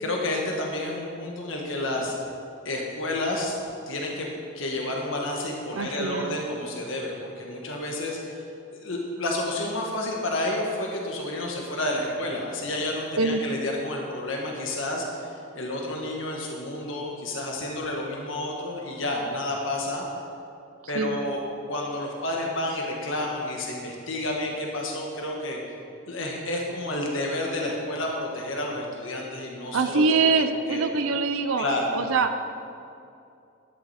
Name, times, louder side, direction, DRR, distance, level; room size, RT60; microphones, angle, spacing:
voice 1, 0.0-2.2 2.6-3.6 3.9-4.3 4.5-8.4 8.8-20.0 20.9-21.4 21.7-25.6 26.1-30.1 30.7-30.8 31.6-31.9, left 1 dB, 75° left, -1 dB, 1.5 m, -30 dB
voice 2, 5.8-6.4 13.2-13.4 20.9-21.1 29.7-31.7 31.9-32.5, right 4 dB, 90° right, 8 dB, 0.6 m, -24 dB
11.5 x 11.0 x 4.3 m, 2.5 s
head